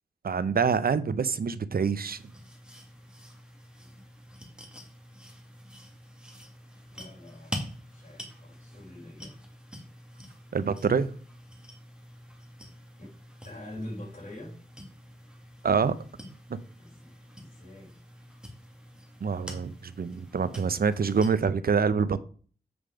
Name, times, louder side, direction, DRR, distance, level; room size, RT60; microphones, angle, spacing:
voice 1, 0.2-2.2 10.5-11.1 15.6-15.9 16.5-16.6 19.2-22.2, right 5 dB, 65° right, 0.6 m, -26 dB
sound 1, 2.1-21.3, equal, 5° right, 1.9 m, -46 dB
voice 2, 6.9-9.4 13.0-13.1 13.4-14.6 16.8-18.0, left 1 dB, 55° left, 4.2 m, -45 dB
7.9 x 5.1 x 5.0 m
wide cardioid pair, 75°, 17 cm